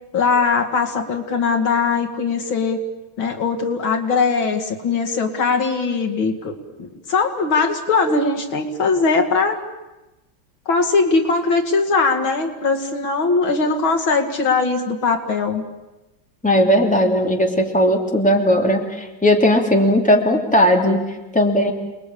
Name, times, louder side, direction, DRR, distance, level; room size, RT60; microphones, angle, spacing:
voice 1, 0.1-2.8 3.2-6.5 6.8-9.6 10.7-15.6, left 4 dB, 80° left, 5 dB, 3.0 m, -20 dB
voice 2, 16.4-21.7, equal, 5° left, 1 dB, 2.8 m, -17 dB
29.0 x 21.0 x 8.6 m, 1.0 s
omnidirectional pair, 2.1 m